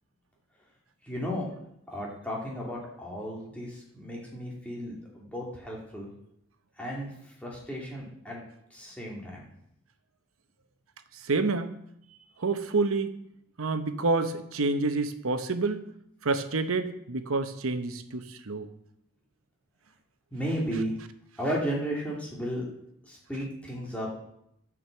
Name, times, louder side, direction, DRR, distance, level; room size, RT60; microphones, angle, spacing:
voice 1, 1.0-1.5 1.9-6.1 6.8-8.4 8.7-9.5 20.3-20.9 21.4-22.7 23.0-24.1, equal, 5° left, -4 dB, 2.5 m, -34 dB
voice 2, 11.3-11.7 12.4-13.1 13.6-15.8 16.2-18.7, right 3 dB, 85° right, 10 dB, 0.9 m, -28 dB
9.3 x 6.2 x 7.0 m, 0.77 s
head